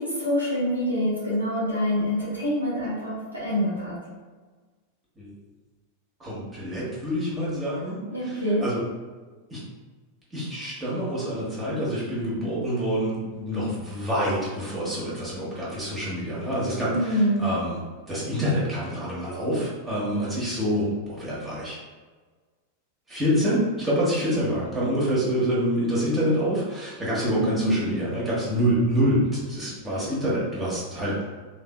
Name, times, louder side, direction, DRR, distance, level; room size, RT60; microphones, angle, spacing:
voice 1, 0.0-4.0 8.0-8.6 16.9-17.5 27.3-27.9, equal, 90° right, -8 dB, 1.1 m, -25 dB
voice 2, 6.2-8.8 9.5-9.6 10.3-17.8 18.1-21.8 23.1-31.2, equal, 15° right, -8 dB, 1.0 m, -26 dB
3.2 x 2.8 x 2.2 m, 1.4 s
figure-of-eight pair, 90°, 0 cm